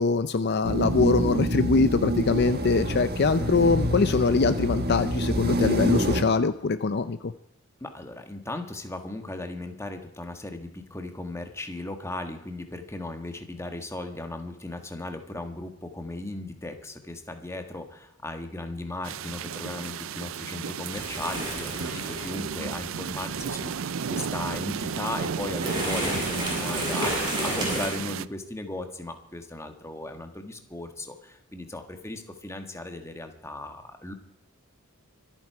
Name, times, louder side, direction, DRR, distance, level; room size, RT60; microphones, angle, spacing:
voice 1, 0.0-7.3, left 4 dB, 50° left, 11 dB, 0.5 m, -23 dB
sound 1, 0.6-6.2, right 1 dB, 45° right, 1.6 m, -27 dB
voice 2, 3.4-3.8 7.8-34.1, left 2 dB, 15° left, 6 dB, 1.6 m, -37 dB
sound 2, 19.0-28.3, right 6 dB, 65° right, 0.5 m, -33 dB
sound 3, 20.9-27.9, equal, 20° right, 7.5 m, -33 dB
25.0 x 9.2 x 4.7 m, 0.81 s
head